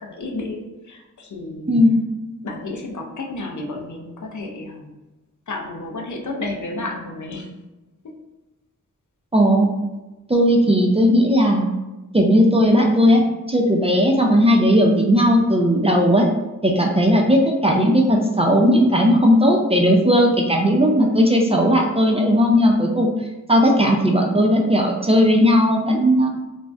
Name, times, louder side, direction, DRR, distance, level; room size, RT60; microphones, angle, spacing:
voice 1, 0.0-1.7 2.4-4.9 5.5-7.5, left 2 dB, 60° left, 1 dB, 0.6 m, -31 dB
voice 2, 1.7-2.0 9.3-9.7 10.3-11.7 12.1-16.3 16.6-23.1 23.5-26.3, equal, 20° right, 0 dB, 0.4 m, -16 dB
2.5 x 2.1 x 3.4 m, 1.1 s
cardioid pair, 45°, 33 cm